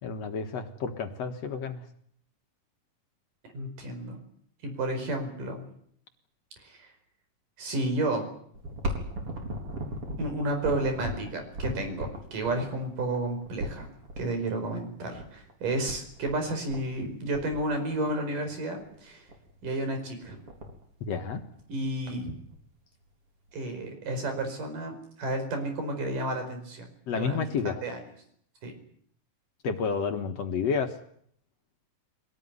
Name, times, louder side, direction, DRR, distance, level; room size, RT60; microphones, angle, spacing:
voice 1, 0.0-1.8 21.0-21.4 27.1-27.8 29.6-30.9, left 5 dB, 55° left, 6 dB, 2.4 m, -30 dB
voice 2, 3.5-4.2 4.6-5.6 6.6-6.9 7.6-8.3 10.2-13.9 14.2-19.3 19.6-20.4 21.7-22.3 23.5-27.5 27.8-28.0 28.6-28.7, right 2 dB, 75° right, 6 dB, 6.6 m, -31 dB
sound 1, 8.5-14.2 15.2-15.3 15.5-15.6 15.9-16.4 16.7-17.1 17.3-18.2 18.8-18.9 19.3-19.6 20.0-20.1 20.2-20.8 21.3-22.1 22.5-22.6 23.5-23.6, equal, 40° right, 4.8 m, -36 dB
24.0 x 18.0 x 9.7 m, 0.66 s
omnidirectional pair, 3.8 m